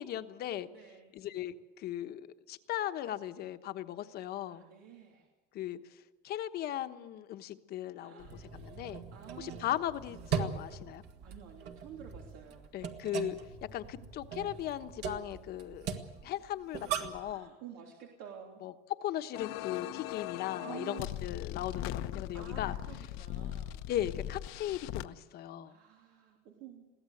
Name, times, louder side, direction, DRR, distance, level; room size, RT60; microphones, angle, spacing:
voice 1, 0.0-0.7 1.1-4.6 5.5-5.8 6.2-8.3 8.5-9.0 9.4-11.0 12.7-13.4 13.7-15.9 16.2-17.5 18.6-18.7 19.0-22.7 23.9-25.8, left 12 dB, 50° left, 10 dB, 1.1 m, -38 dB
voice 2, 0.7-1.1 4.4-5.3 8.0-8.4 9.1-9.6 11.2-12.7 17.1-18.6 20.6-21.1 22.3-23.8 25.6-26.8, right 9 dB, 90° right, 0 dB, 3.2 m, -50 dB
sound 1, 8.2-17.3, right 7 dB, 55° right, 2.0 m, -40 dB
sound 2, 19.3-25.0, left 13 dB, 80° left, 1.0 m, -39 dB
22.5 x 16.5 x 7.9 m, 1.1 s
cardioid pair, 165°, 21 cm